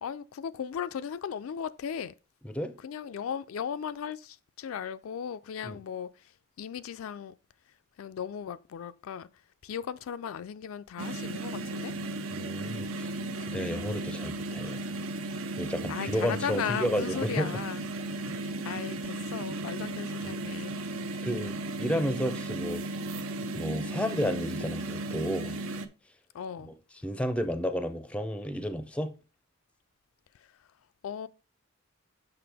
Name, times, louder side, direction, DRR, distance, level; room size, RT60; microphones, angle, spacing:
voice 1, 0.0-2.1 2.8-6.3 6.6-7.3 8.0-9.3 9.6-11.9 15.9-17.8 18.1-20.7 21.1-21.2 26.3-26.7 30.4-30.5 31.0-31.3, left 8 dB, 75° left, 0.3 m, -37 dB
sound 1, 11.0-25.9, right 2 dB, 75° right, 0.6 m, -35 dB
voice 2, 12.3-13.1 13.4-14.8 15.6-17.5 21.2-22.8 23.4-25.6 26.6-26.7 27.0-29.1, equal, 5° left, 0.4 m, -32 dB
5.9 x 5.6 x 3.4 m
head